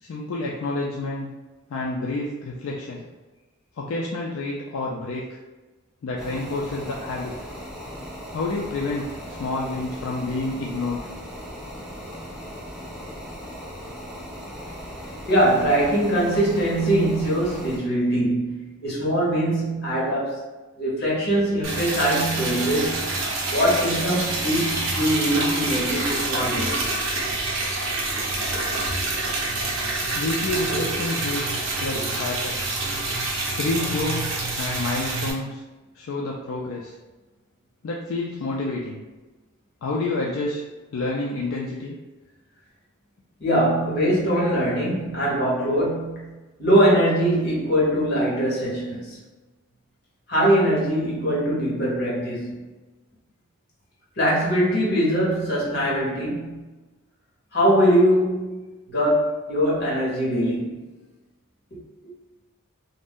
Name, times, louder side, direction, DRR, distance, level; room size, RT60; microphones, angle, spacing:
voice 1, 0.0-1.3 1.7-3.1 3.8-5.4 6.0-7.3 8.3-11.0 29.7-29.8 30.1-31.4 31.8-32.7 33.6-35.6 35.9-36.9 37.8-39.0 39.8-42.0, left 2 dB, 70° left, -3 dB, 0.4 m, -29 dB
sound 1, 6.2-17.8, equal, ahead, 0.6 m, -38 dB
voice 2, 15.3-20.4 20.8-23.1 23.5-26.9 43.4-49.2 50.3-52.6 54.2-56.6 57.5-60.9, equal, 50° left, -5 dB, 1.1 m, -22 dB
Liquid, 21.6-35.3, right 2 dB, 75° right, 0.7 m, -27 dB
2.5 x 2.1 x 3.4 m, 1.2 s
head